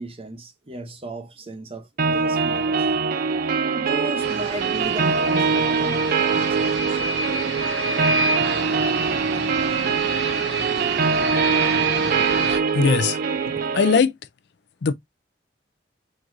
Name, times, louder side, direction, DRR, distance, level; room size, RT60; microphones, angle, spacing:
voice 1, 0.0-2.9 3.7-7.1, right 2 dB, 30° right, 0.8 m, -34 dB
sound 1, 2.0-14.0, right 5 dB, 50° right, 0.4 m, -23 dB
sound 2, 4.2-12.6, right 4 dB, 75° right, 1.4 m, -28 dB
voice 2, 12.7-13.2 13.7-14.1 14.8-14.9, left 5 dB, 65° left, 0.4 m, -19 dB
3.9 x 2.5 x 4.6 m
head